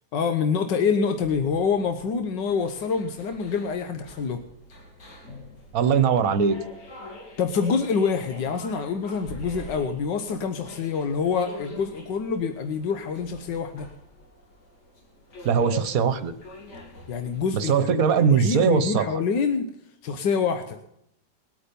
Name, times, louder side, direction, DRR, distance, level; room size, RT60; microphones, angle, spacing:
voice 1, 0.1-4.4 7.4-13.9 17.1-19.7 20.0-20.8, left 5 dB, 90° left, 7 dB, 1.7 m, -26 dB
sound 1, 1.1-17.7, equal, 70° left, 3.2 m, -45 dB
voice 2, 5.7-6.6 15.4-16.3 17.5-19.2, right 6 dB, 60° right, 12 dB, 1.3 m, -21 dB
20.5 x 8.7 x 5.3 m, 0.76 s
omnidirectional pair, 1.8 m